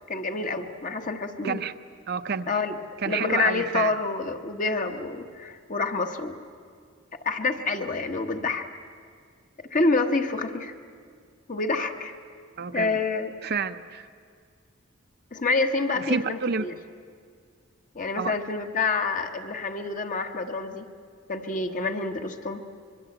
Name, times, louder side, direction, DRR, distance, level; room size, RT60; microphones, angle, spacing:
voice 1, 0.1-1.6 2.5-2.8 3.0-6.4 7.2-8.7 9.6-10.7 11.5-12.1 12.7-13.3 15.3-16.7 17.9-20.9 21.3-22.6, left 3 dB, 40° left, 5 dB, 1.4 m, -27 dB
voice 2, 2.1-2.5 3.0-4.0 12.6-12.9 13.4-14.1 16.0-16.7 18.2-18.3, right 5 dB, 55° right, 9 dB, 0.7 m, -29 dB
25.0 x 22.5 x 8.0 m, 2.1 s
head